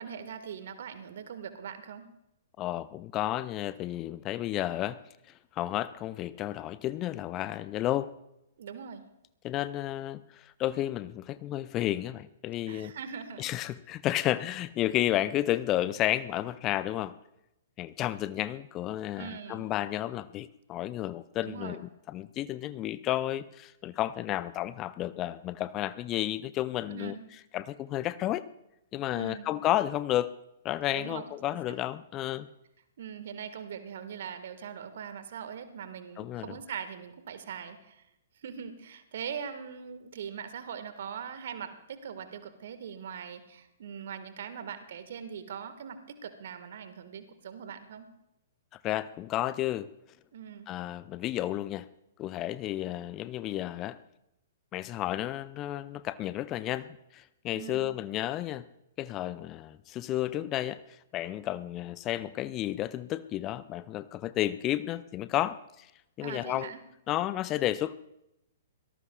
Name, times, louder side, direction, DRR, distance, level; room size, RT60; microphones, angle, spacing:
voice 1, 0.0-2.1 8.6-9.0 12.7-13.5 19.2-19.6 21.4-21.8 26.9-27.2 29.1-29.5 30.9-31.8 33.0-38.0 38.4-48.1 50.3-50.7 57.5-57.9 66.2-66.8, right 7 dB, 55° right, 10 dB, 1.6 m, -41 dB
voice 2, 2.6-5.0 5.5-8.1 9.4-12.9 13.4-17.1 17.8-27.2 27.5-28.4 28.9-30.3 30.6-32.5 36.2-36.6 48.7-49.9 50.7-51.9 52.2-54.0 54.7-58.7 59.0-65.9 66.2-66.7 67.1-67.9, left 14 dB, 25° left, 16 dB, 0.5 m, -32 dB
24.0 x 18.0 x 2.3 m, 0.85 s
figure-of-eight pair, 115°, 0 cm